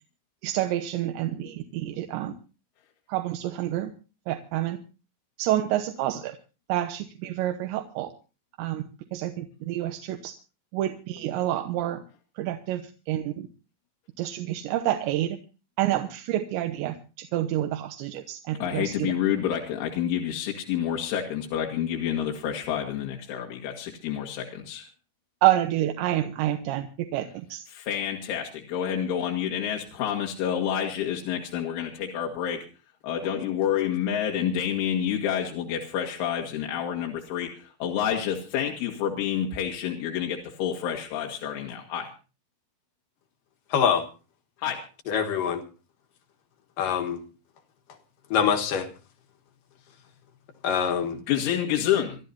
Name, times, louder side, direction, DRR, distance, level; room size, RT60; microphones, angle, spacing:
voice 1, 0.4-2.3 3.1-3.9 4.3-4.8 5.4-6.4 6.7-8.1 8.6-8.8 9.1-10.3 10.7-12.0 12.4-12.8 13.1-13.5 14.2-15.4 15.8-19.1 25.4-26.9 27.1-27.6, right 13 dB, 80° right, 6 dB, 3.2 m, -28 dB
voice 2, 18.6-24.9 27.7-32.7 33.0-42.1 44.6-44.8 51.3-52.2, left 9 dB, 90° left, 0 dB, 4.2 m, -28 dB
voice 3, 43.7-44.0 45.1-45.6 46.8-47.2 48.3-48.9 50.6-51.2, left 7 dB, 65° left, 6 dB, 2.4 m, -24 dB
27.0 x 12.5 x 2.7 m, 0.33 s
omnidirectional pair, 5.4 m